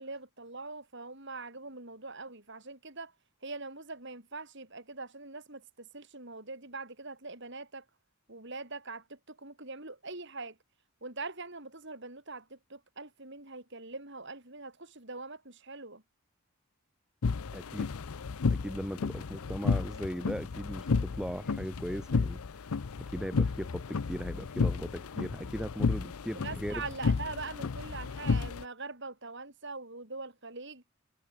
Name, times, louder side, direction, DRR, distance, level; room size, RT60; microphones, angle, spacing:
voice 1, 0.0-3.1 3.4-7.8 8.3-10.6 11.0-16.0 26.3-30.8, right 3 dB, 50° right, 4.6 m, -43 dB
sound 1, 17.2-28.6, left 4 dB, 80° left, 0.6 m, -32 dB
voice 2, 17.5-17.9 18.5-22.7 23.0-26.8, equal, 5° right, 1.2 m, -38 dB
head